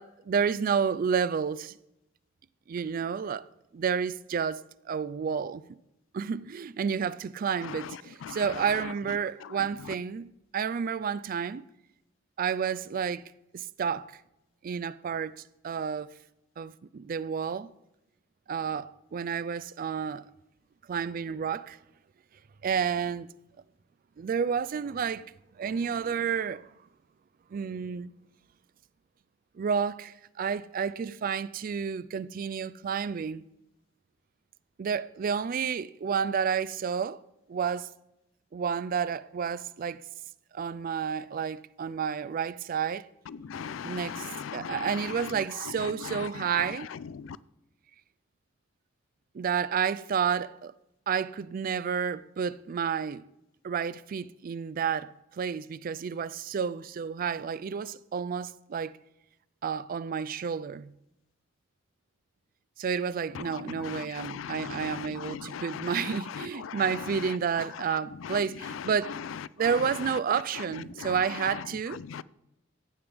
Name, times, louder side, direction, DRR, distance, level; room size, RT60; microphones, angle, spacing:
voice 1, 0.0-1.8 2.7-3.5 3.7-5.6 6.1-11.6 12.4-14.1 14.6-15.3 15.6-16.1 16.6-17.7 18.5-20.3 20.9-21.8 22.6-23.3 24.2-25.3 25.6-26.7 27.5-28.1 29.6-33.5 34.8-37.2 37.5-37.9 38.5-40.0 40.5-43.0 43.8-46.9 49.3-50.7 51.1-53.2 53.6-58.9 59.6-60.9 62.8-69.2 69.6-72.0, right 6 dB, 45° right, 0.3 m, -30 dB
voice 2, 43.4-44.8 47.2-47.3 63.8-65.6 72.1-72.2, left 7 dB, 90° left, 0.4 m, -38 dB
15.5 x 8.6 x 3.4 m
head